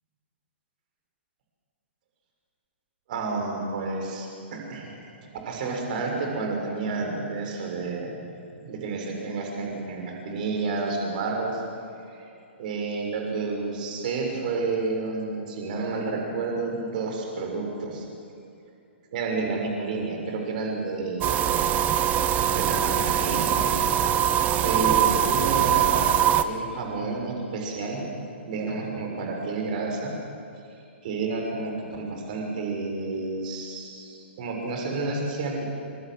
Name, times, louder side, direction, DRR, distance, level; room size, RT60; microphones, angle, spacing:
voice 1, 3.1-8.2 8.6-11.6 12.1-12.3 12.6-18.1 19.1-21.5 22.5-23.8 24.1-24.2 24.6-26.0 26.4-28.0 28.4-30.1 31.0-35.6, right 3 dB, 45° right, 1 dB, 6.2 m, -30 dB
sound 1, 21.2-26.4, right 10 dB, 20° right, 1.1 m, -22 dB
27.5 x 26.0 x 7.8 m, 2.6 s
figure-of-eight pair, 115°, 7 cm